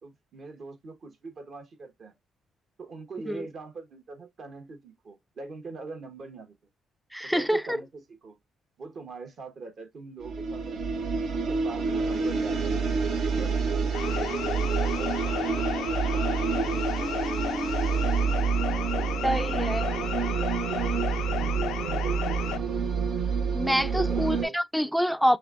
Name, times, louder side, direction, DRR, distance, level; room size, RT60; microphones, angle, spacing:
voice 1, 0.0-2.2 2.8-6.5 7.2-8.4 8.8-11.0 11.3-12.7 13.4-13.5 13.9-17.3 18.5-21.1 21.8-22.7 23.9-24.6, right 4 dB, 55° right, 1.3 m, -43 dB
voice 2, 7.1-7.8 19.2-19.9 23.5-25.4, equal, ahead, 0.3 m, -26 dB
sound 1, 10.2-24.4, right 5 dB, 75° right, 0.9 m, -28 dB
sound 2, 13.9-22.6, left 11 dB, 85° left, 0.3 m, -34 dB
5.6 x 2.3 x 2.5 m
cardioid pair, 90°, 0 cm